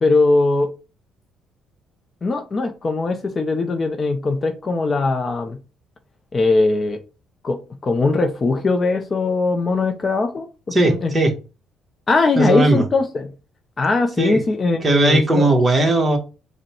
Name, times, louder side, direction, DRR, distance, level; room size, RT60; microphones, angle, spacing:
voice 1, 0.0-0.7 2.2-5.6 6.3-7.0 7.4-11.1 12.1-13.3 13.8-15.5, left 3 dB, 35° left, 0.6 m, -20 dB
voice 2, 10.7-11.3 12.3-12.8 14.2-14.4 14.8-16.2, right 2 dB, 20° right, 1.2 m, -17 dB
5.1 x 2.2 x 4.3 m
cardioid pair, 100°, 0 cm